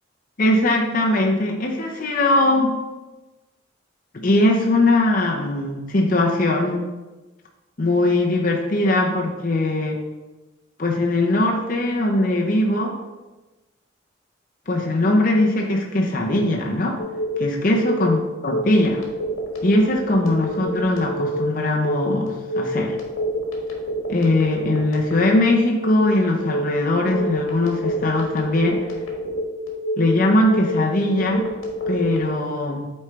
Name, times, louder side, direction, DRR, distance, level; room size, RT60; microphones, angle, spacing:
voice 1, 0.4-2.8 4.1-6.8 7.8-10.0 10.8-12.9 14.7-17.0 17.4-19.0 19.6-23.0 24.1-28.8 30.0-31.5 31.9-32.9, left 1 dB, 40° left, 0 dB, 0.7 m, -20 dB
Telephone, 17.0-32.2, left 1 dB, 85° left, 1.5 m, -27 dB
8.4 x 4.4 x 3.3 m, 1.1 s
head